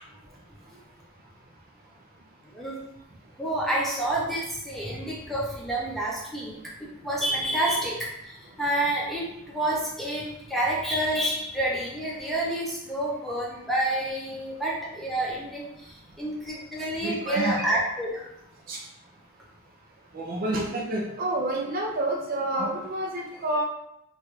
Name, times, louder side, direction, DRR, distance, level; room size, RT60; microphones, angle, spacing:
voice 1, 0.3-2.2 2.6-2.7 8.5-8.6 15.8-16.2 17.0-17.6 18.6-19.5 20.1-23.6, right 1 dB, 45° right, 0 dB, 0.4 m, -31 dB
voice 2, 2.4-2.8 3.4-18.3, right 1 dB, ahead, -5 dB, 0.6 m, -29 dB
3.0 x 2.3 x 3.0 m, 0.82 s
head